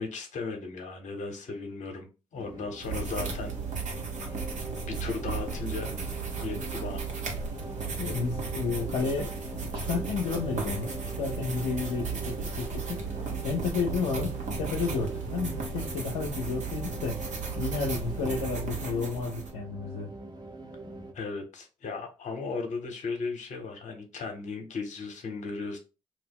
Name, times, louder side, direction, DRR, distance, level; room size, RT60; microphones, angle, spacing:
voice 1, 0.0-3.6 3.9-4.0 4.8-5.9 6.4-7.0 8.0-8.1 21.1-25.8, left 4 dB, 55° left, 0.9 m, -36 dB
sound 1, 2.3-21.1, right 2 dB, 30° right, 0.8 m, -42 dB
sound 2, 2.8-19.5, right 5 dB, 55° right, 1.0 m, -35 dB
voice 2, 8.0-17.2 17.6-20.1, left 4 dB, 75° left, 0.5 m, -32 dB
2.4 x 2.0 x 3.6 m
hypercardioid pair, 45°, 15 cm